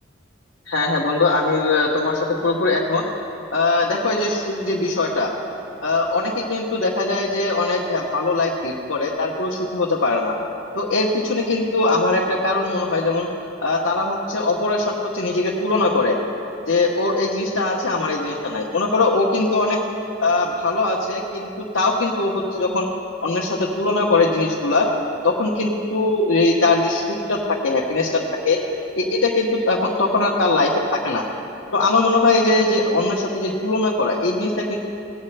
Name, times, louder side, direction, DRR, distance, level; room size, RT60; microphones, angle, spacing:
voice 1, 0.7-3.0 3.5-5.3 5.8-10.3 10.7-13.3 13.6-16.2 16.7-19.8 20.2-22.9 23.2-24.9 25.2-28.6 28.9-31.2 31.7-34.8, left 2 dB, 75° left, -4 dB, 1.0 m, -21 dB
18.5 x 8.6 x 3.3 m, 2.8 s
head